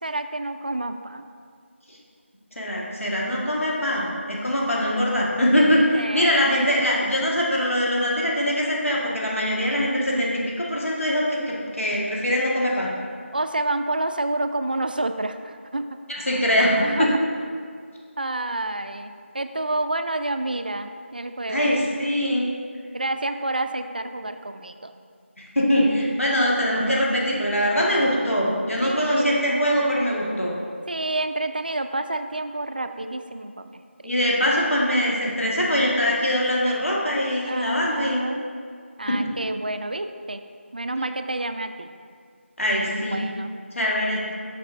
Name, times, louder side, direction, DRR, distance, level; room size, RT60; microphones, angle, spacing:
voice 1, 0.0-1.2 5.9-6.5 10.1-10.3 13.3-15.9 16.3-16.4 16.8-17.2 18.2-21.8 22.9-24.9 28.8-29.4 30.9-33.8 37.4-38.4 39.0-40.4 40.7-41.9 42.9-43.5 43.9-44.0, right 2 dB, 45° right, 8 dB, 0.3 m, -29 dB
voice 2, 2.5-10.3 10.6-12.9 16.1-16.7 17.0-17.1 21.5-22.5 25.5-30.5 34.0-38.2 39.1-39.2 42.6-43.2 43.7-44.2, equal, 90° left, -4 dB, 1.6 m, -22 dB
8.3 x 5.9 x 2.6 m, 2.1 s
figure-of-eight pair, 170°, 7 cm